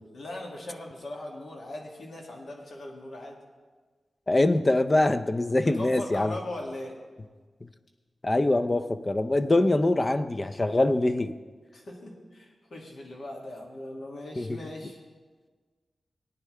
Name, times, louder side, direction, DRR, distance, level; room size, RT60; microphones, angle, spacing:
voice 1, 0.1-3.4 5.6-7.0 11.7-15.0, left 1 dB, 65° left, -1 dB, 2.1 m, -39 dB
voice 2, 4.3-6.4 7.6-7.7 8.2-11.3 14.4-14.6, left 2 dB, 25° left, 9 dB, 0.5 m, -24 dB
19.0 x 9.7 x 3.3 m, 1.4 s
wide cardioid pair, 150°, 0 cm